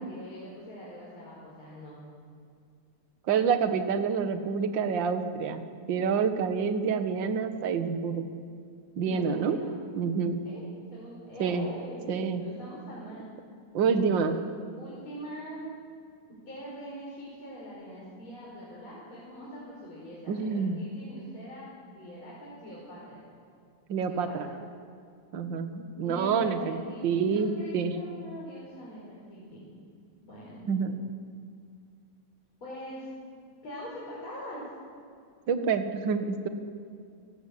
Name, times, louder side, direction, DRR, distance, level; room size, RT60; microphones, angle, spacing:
voice 1, 0.0-2.0 9.0-9.7 10.4-10.6 10.9-13.3 13.9-14.4 14.7-15.7 16.4-23.2 24.1-24.5 26.0-29.7 30.2-30.6 32.6-33.1 33.6-34.7, equal, 40° left, -6 dB, 6.2 m, -43 dB
voice 2, 3.3-8.2 9.0-9.6 10.0-10.4 11.4-11.7 12.1-12.4 13.7-14.4 20.3-20.8 23.9-24.5 25.3-27.9 30.7-31.0 35.5-36.5, right 6 dB, 45° right, 8 dB, 1.8 m, -27 dB
30.0 x 16.5 x 8.6 m, 2.3 s
omnidirectional pair, 3.4 m